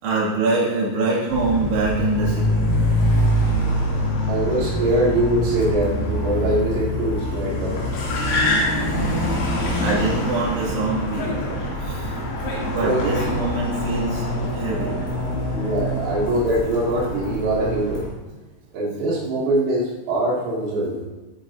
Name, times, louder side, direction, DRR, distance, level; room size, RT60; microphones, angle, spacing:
voice 1, 0.0-2.7 4.9-5.0 8.9-11.3 11.8-12.1 12.6-14.2 14.5-15.0, right 3 dB, 65° right, -6 dB, 4.6 m, -25 dB
Car, 1.3-18.0, left 1 dB, 85° left, 5.7 m, -24 dB
voice 2, 4.3-7.8 12.8-13.1 15.5-18.1 18.7-21.1, right 1 dB, 90° right, -6 dB, 5.3 m, -23 dB
22.0 x 9.0 x 2.9 m, 1.1 s
omnidirectional pair, 5.4 m